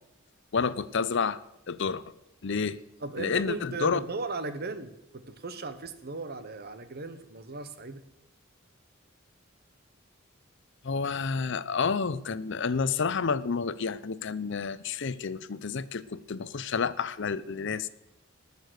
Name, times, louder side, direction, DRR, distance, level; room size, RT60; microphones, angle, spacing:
voice 1, 0.5-1.4 1.7-2.0 2.4-2.8 3.2-4.0 10.8-17.9, left 5 dB, 60° left, 16 dB, 0.6 m, -29 dB
voice 2, 3.0-8.0, right 3 dB, 50° right, 11 dB, 1.1 m, -37 dB
19.5 x 6.8 x 6.4 m, 0.86 s
head